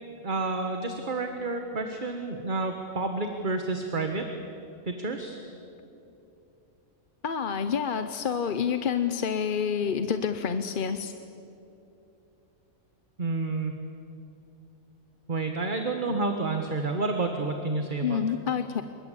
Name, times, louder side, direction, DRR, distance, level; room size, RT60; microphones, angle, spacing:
voice 1, 0.2-4.2 4.8-5.4 13.2-13.7 15.3-18.2, right 3 dB, 35° right, 5 dB, 1.6 m, -29 dB
voice 2, 7.2-11.1 18.0-18.8, left 7 dB, 45° left, 9 dB, 0.9 m, -28 dB
27.0 x 23.5 x 8.5 m, 2.8 s
omnidirectional pair, 1.4 m